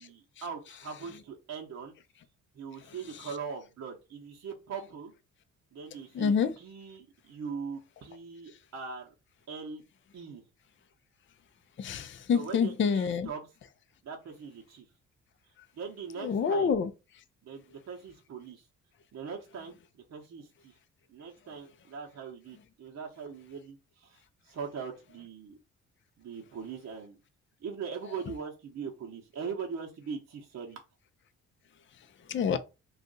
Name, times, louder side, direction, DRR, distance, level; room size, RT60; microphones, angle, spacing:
voice 1, 0.0-1.9 2.5-5.1 5.7-9.1 9.5-9.8 10.1-10.4 12.3-13.5 14.0-14.9 15.7-16.8 17.4-18.6 19.1-20.7 21.1-25.6 26.2-27.2 27.6-30.8, right 6 dB, 50° right, 0.9 m, -41 dB
voice 2, 6.2-6.5 11.8-13.3 16.2-16.9 32.3-32.6, left 6 dB, 35° left, 0.5 m, -27 dB
2.5 x 2.4 x 3.9 m
hypercardioid pair, 55°, 34 cm